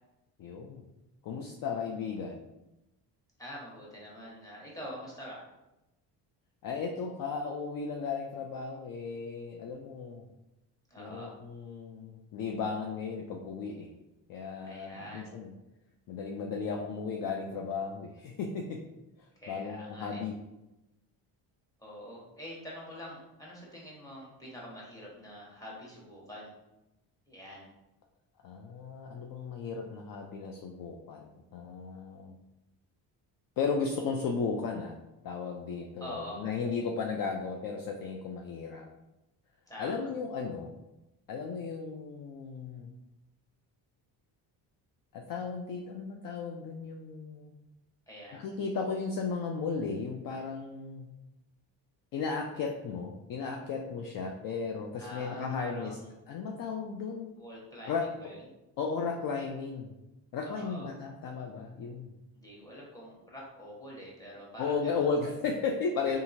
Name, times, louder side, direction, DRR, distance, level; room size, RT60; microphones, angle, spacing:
voice 1, 0.4-0.8 1.2-2.4 6.6-10.3 11.0-13.9 14.3-15.5 16.1-18.8 19.2-20.4 28.4-32.3 33.6-35.0 35.2-38.9 39.8-40.7 41.3-42.9 45.1-47.5 48.3-51.1 52.1-56.0 56.3-57.3 57.9-58.1 58.8-59.9 60.3-62.1 64.6-66.2, left 5 dB, 50° left, 2 dB, 0.4 m, -35 dB
voice 2, 3.4-5.4 10.9-11.3 14.6-15.3 19.4-20.2 21.8-26.5 27.3-27.7 36.0-36.4 39.7-40.1 48.1-48.5 55.0-56.1 57.4-58.4 60.4-60.9 62.3-65.1, equal, 5° left, -5 dB, 1.2 m, -45 dB
2.7 x 2.5 x 2.6 m, 0.95 s
supercardioid pair, 65°, 48 cm